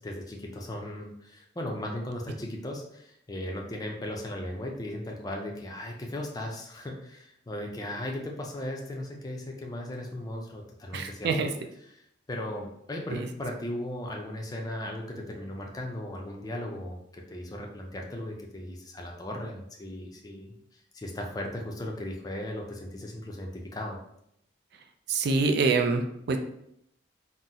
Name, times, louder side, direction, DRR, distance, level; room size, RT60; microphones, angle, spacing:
voice 1, 0.0-11.5 11.9-12.0 12.3-24.0, left 1 dB, 20° left, 1 dB, 0.4 m, -37 dB
voice 2, 10.9-11.5 13.1-13.3 25.1-26.4, right 4 dB, 60° right, 5 dB, 0.3 m, -26 dB
3.7 x 2.0 x 2.8 m, 0.76 s
head